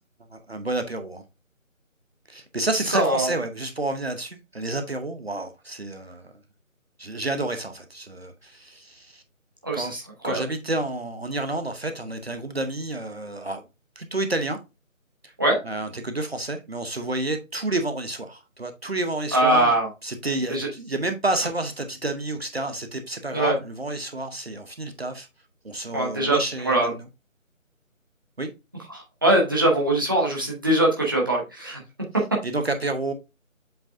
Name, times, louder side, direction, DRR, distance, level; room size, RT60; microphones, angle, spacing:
voice 1, 0.3-1.2 2.3-6.3 7.0-9.2 9.7-9.9 10.2-13.6 14.0-14.6 15.2-15.3 15.6-19.8 20.0-25.3 25.6-27.1 28.4-28.5 32.4-33.1, right 2 dB, 50° right, 0.9 m, -30 dB
voice 2, 2.9-3.3 9.6-10.4 15.4-15.6 19.3-19.9 20.5-20.7 23.3-23.5 25.9-26.4 26.6-26.9 28.9-31.8, right 1 dB, 15° right, 1.0 m, -22 dB
7.7 x 4.7 x 2.6 m
figure-of-eight pair, 160°, 41 cm